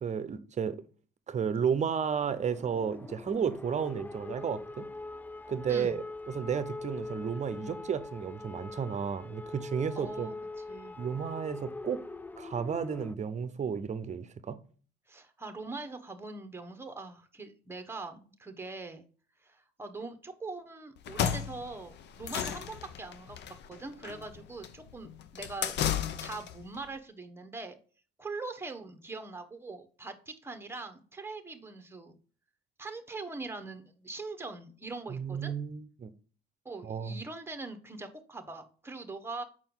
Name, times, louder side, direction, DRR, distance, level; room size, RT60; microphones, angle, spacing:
voice 1, 0.0-0.8 1.3-4.8 5.5-10.3 11.0-12.0 12.4-14.6 35.1-36.1 36.8-37.2, right 7 dB, 35° right, 0.8 m, -33 dB
sound 1, 2.2-13.1, left 2 dB, 10° left, 0.3 m, -43 dB
voice 2, 10.0-11.0 15.1-19.0 19.4-25.8 26.2-27.8 28.2-32.2 32.8-35.5 36.6-39.4, right 3 dB, 10° right, 1.1 m, -42 dB
sound 2, 21.0-26.6, left 9 dB, 60° left, 0.7 m, -34 dB
6.1 x 4.4 x 3.8 m
supercardioid pair, 80°, 20 cm